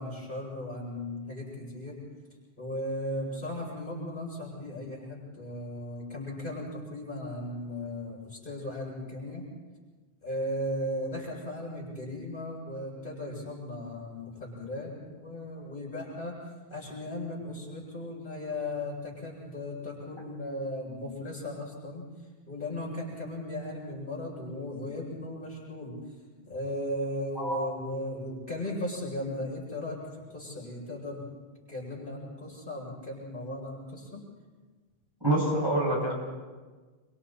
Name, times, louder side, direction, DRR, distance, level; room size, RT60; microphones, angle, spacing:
voice 1, 0.0-2.0 2.6-9.4 10.2-16.3 16.7-22.0 22.5-26.0 26.5-30.0 30.3-31.3 31.7-34.2, left 1 dB, 50° left, -4 dB, 7.8 m, -36 dB
voice 2, 35.2-36.1, right 1 dB, 20° right, -4 dB, 7.2 m, -26 dB
27.0 x 26.0 x 4.4 m, 1.4 s
omnidirectional pair, 1.1 m